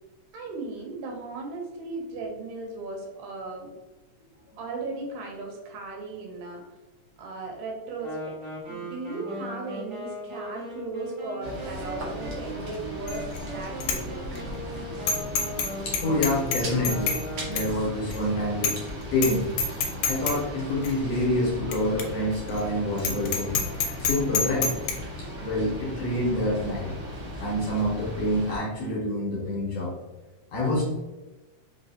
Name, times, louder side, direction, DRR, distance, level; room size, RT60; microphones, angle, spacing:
voice 1, 0.3-3.7 4.6-6.6 7.2-8.4 8.7-14.3, right 3 dB, 90° right, 0 dB, 2.3 m, -36 dB
Wind instrument woodwind instrument, 8.0-17.9, equal, 40° right, 1.6 m, -38 dB
sound 1, 11.4-28.6, equal, 60° right, 1.5 m, -37 dB
Bicycle bell, 13.1-13.4 13.8-14.0 14.4-14.5 15.1-15.7 15.9-17.2 17.6-17.7 18.1-18.2 18.6-18.9 19.2-19.3 19.6-20.4 20.8-20.9 21.7-21.8 22.0-22.1 22.5-22.6 23.0-24.9, left 5 dB, 85° left, 2.1 m, -26 dB
voice 2, 15.9-17.2 17.5-18.8 19.1-19.5 20.1-23.6 24.0-24.8 25.2-26.9 27.4-29.9 30.5-30.8, left 1 dB, 65° left, -4 dB, 1.8 m, -27 dB
5.2 x 2.8 x 2.7 m, 1.1 s
omnidirectional pair, 3.5 m